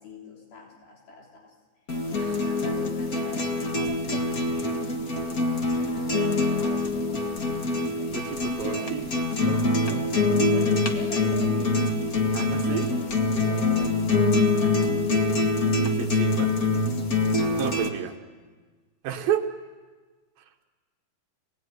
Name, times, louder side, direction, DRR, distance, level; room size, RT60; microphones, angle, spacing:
voice 1, 0.0-1.5 2.2-8.9 9.5-14.9 15.2-16.1 17.4-18.2, left 4 dB, 70° left, -1 dB, 5.2 m, -45 dB
sound 1, 1.9-17.9, left 2 dB, 45° left, 1.1 m, -25 dB
voice 2, 8.1-9.1 9.4-10.3 12.3-12.9 16.0-16.5 17.6-18.1 19.0-19.5, right 9 dB, 70° right, 5 dB, 3.2 m, -31 dB
27.5 x 19.5 x 9.6 m, 1.4 s
omnidirectional pair, 4.5 m